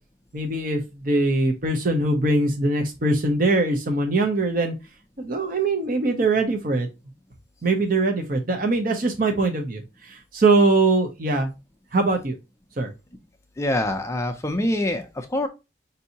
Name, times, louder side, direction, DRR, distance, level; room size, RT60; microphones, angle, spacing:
voice 1, 0.3-4.7 5.2-6.9 7.6-11.5 11.9-12.4 12.8-12.9, right 2 dB, 50° right, 3 dB, 0.7 m, -22 dB
voice 2, 13.6-15.5, left 1 dB, 15° left, 6 dB, 0.4 m, -25 dB
5.3 x 2.7 x 2.7 m, 0.26 s
head